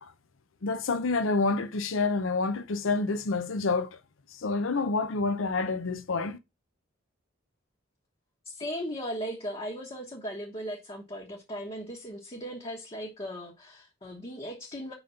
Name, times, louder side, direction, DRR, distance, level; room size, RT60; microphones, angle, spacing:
voice 1, 0.6-4.0 4.3-6.4, left 3 dB, 85° left, 0.6 m, -28 dB
voice 2, 8.4-14.9, equal, 30° left, 1.1 m, -37 dB
5.1 x 4.0 x 5.6 m
head